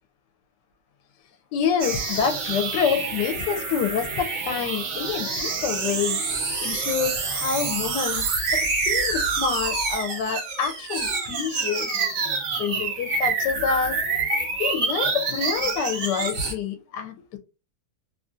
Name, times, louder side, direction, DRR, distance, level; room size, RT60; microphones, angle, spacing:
voice 1, 1.5-6.2 6.6-12.0 12.6-14.0 14.6-17.4, left 7 dB, 80° left, 1.2 m, -27 dB
sound 1, 1.8-16.5, right 4 dB, 60° right, 1.1 m, -27 dB
2.9 x 2.4 x 2.5 m
omnidirectional pair, 1.8 m